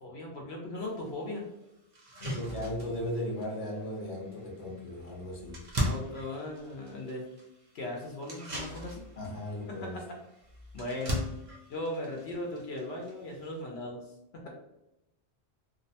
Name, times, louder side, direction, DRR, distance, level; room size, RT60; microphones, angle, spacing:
voice 1, 0.0-1.4 5.8-7.2 7.7-9.0 9.8-9.9 10.7-11.2 11.7-14.0 14.3-14.4, left 1 dB, 75° left, 0 dB, 0.8 m, -38 dB
sound 1, 0.9-1.0 1.5-1.6 1.9-13.6, equal, 40° right, 0.5 m, -40 dB
voice 2, 2.1-5.6 9.2-10.1, left 1 dB, 40° left, -3 dB, 0.7 m, -37 dB
2.6 x 2.1 x 2.6 m, 0.87 s
omnidirectional pair, 1.1 m